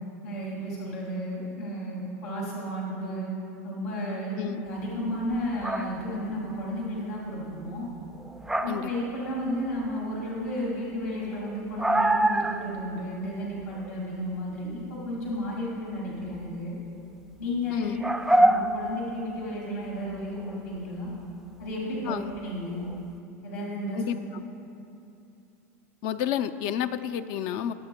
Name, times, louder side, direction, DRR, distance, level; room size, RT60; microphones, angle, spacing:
voice 1, 0.2-3.3 3.6-7.9 8.6-16.8 17.4-18.0 18.3-21.1 21.6-22.2 22.4-22.9 23.4-24.0, equal, 80° left, -4 dB, 2.0 m, -33 dB
voice 2, 4.3-4.7 8.7-8.9 17.7-18.0 22.1-22.3 23.9-24.4 26.0-27.7, left 9 dB, 55° left, 11 dB, 0.5 m, -30 dB
sound 1, 5.3-6.0 8.1-9.0 9.3-9.8 10.2-10.3 10.7-10.8 10.9-11.0 11.3-12.8 13.1-13.2 13.6-13.9 16.3-16.4 18.0-19.5 20.1-20.6 22.3-22.4 22.8-23.0, right 1 dB, 5° right, 0.4 m, -25 dB
20.5 x 7.9 x 2.2 m, 2.7 s
hypercardioid pair, 105°, 8 cm